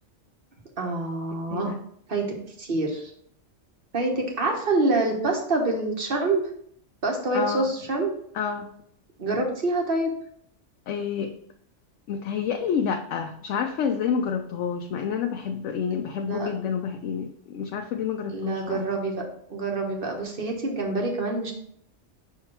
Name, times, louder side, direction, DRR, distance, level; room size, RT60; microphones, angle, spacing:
voice 1, 0.8-1.7 2.1-3.1 3.9-6.4 7.0-8.1 9.2-10.1 16.3-16.5 18.3-19.2 19.5-21.5, right 2 dB, 50° right, 2 dB, 1.3 m, -26 dB
voice 2, 7.3-7.7 8.3-8.7 10.9-11.3 12.1-18.9, left 7 dB, 75° left, 4 dB, 0.9 m, -28 dB
6.3 x 3.6 x 4.4 m, 0.67 s
omnidirectional pair, 1.3 m